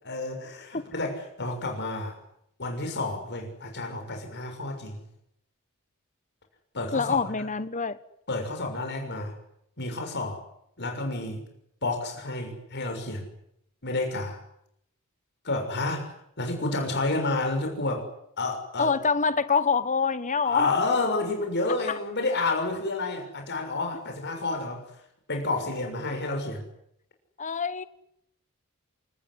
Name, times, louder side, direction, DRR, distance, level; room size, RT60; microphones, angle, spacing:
voice 1, 0.0-2.1 2.6-5.0 6.7-7.2 8.3-9.3 9.8-10.4 10.8-11.4 11.8-13.3 13.8-14.4 15.4-18.1 18.4-18.9 20.4-24.8 25.3-26.7, left 2 dB, 50° left, 6.5 m, -30 dB
voice 2, 6.9-8.0 18.8-20.7 21.9-22.0 27.4-27.9, left 5 dB, 35° left, 1.4 m, -25 dB
28.0 x 19.5 x 9.8 m
head